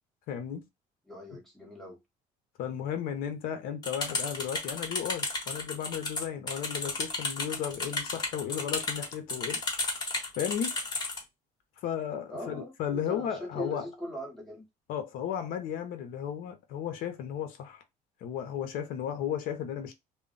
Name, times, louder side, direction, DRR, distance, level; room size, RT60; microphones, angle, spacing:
voice 1, 0.3-0.6 2.6-9.6 10.4-10.8 11.8-13.9 14.9-17.8 18.2-19.9, left 9 dB, 65° left, 0.6 m, -34 dB
voice 2, 1.1-2.0 12.3-14.6, equal, ahead, 1.0 m, -40 dB
sound 1, 3.8-11.2, left 2 dB, 25° left, 1.0 m, -33 dB
2.2 x 2.0 x 3.7 m
cardioid pair, 155°, 16 cm